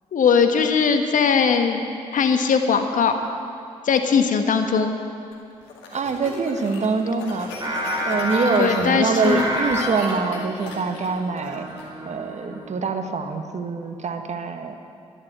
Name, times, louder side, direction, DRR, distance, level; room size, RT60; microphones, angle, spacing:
voice 1, 0.1-1.8 2.1-3.2 3.8-4.9 8.6-9.4, left 6 dB, 55° left, 6 dB, 1.3 m, -19 dB
sound 1, 5.3-11.8, left 3 dB, 85° left, 2.0 m, -37 dB
voice 2, 5.9-7.5 8.1-11.7 12.0-14.8, right 4 dB, 45° right, 7 dB, 1.4 m, -24 dB
Singing, 7.6-12.8, equal, 25° right, 3.4 m, -29 dB
11.5 x 11.0 x 7.8 m, 2.5 s
hypercardioid pair, 45°, 16 cm